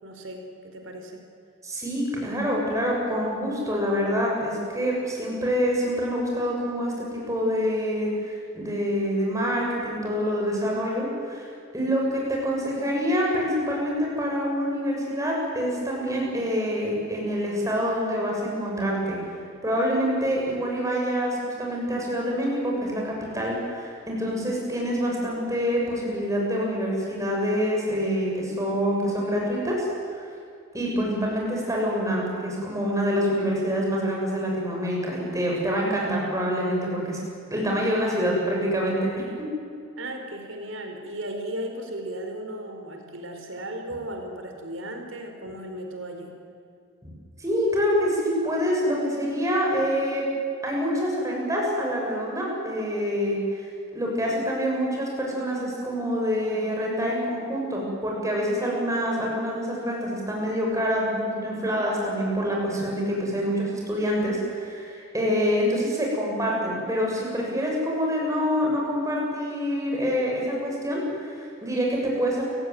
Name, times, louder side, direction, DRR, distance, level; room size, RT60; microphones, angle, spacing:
voice 1, 0.0-1.2 40.0-46.3, right 1 dB, 70° right, 4 dB, 4.6 m, -36 dB
voice 2, 1.6-11.5 11.7-19.2 19.6-29.9 30.1-30.2 30.7-37.2 37.5-39.1 47.0-47.1 47.4-50.2 50.6-72.4, equal, 15° right, -2 dB, 7.1 m, -26 dB
29.0 x 17.5 x 9.4 m, 2.4 s
head